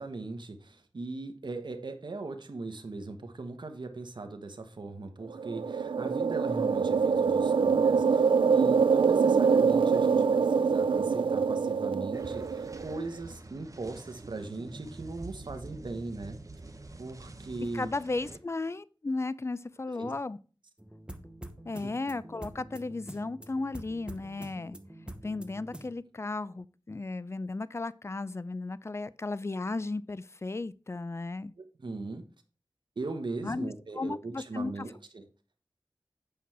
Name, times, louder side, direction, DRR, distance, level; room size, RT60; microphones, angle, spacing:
voice 1, 0.0-16.4 17.0-17.9 20.0-20.1 21.8-21.9 31.6-32.2 33.0-35.2, right 3 dB, 70° right, 1.2 m, -39 dB
sound 1, 5.3-13.0, right 5 dB, 85° right, 0.4 m, -25 dB
sound 2, 12.1-18.4, right 2 dB, 40° right, 1.0 m, -46 dB
voice 2, 17.7-20.4 21.6-24.8 25.2-31.5 33.4-33.7 34.0-34.9, left 3 dB, 35° left, 0.5 m, -35 dB
sound 3, 20.8-25.9, right 1 dB, 10° right, 1.0 m, -46 dB
8.5 x 5.7 x 4.7 m
wide cardioid pair, 60°, 8 cm